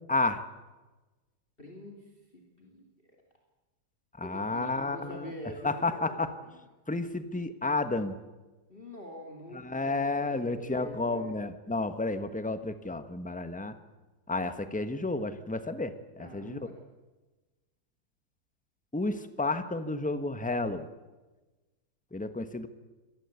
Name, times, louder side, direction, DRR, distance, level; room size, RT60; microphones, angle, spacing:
voice 1, 0.1-0.4 4.2-5.3 5.6-6.3 6.9-8.1 9.6-13.7 14.3-16.6 18.9-20.9 22.1-22.7, left 2 dB, 5° left, 10 dB, 1.1 m, -31 dB
voice 2, 1.6-2.9 4.2-6.6 8.7-11.5 16.2-16.8, equal, 30° left, 1 dB, 2.8 m, -45 dB
25.0 x 18.5 x 8.3 m, 1.2 s
omnidirectional pair, 1.8 m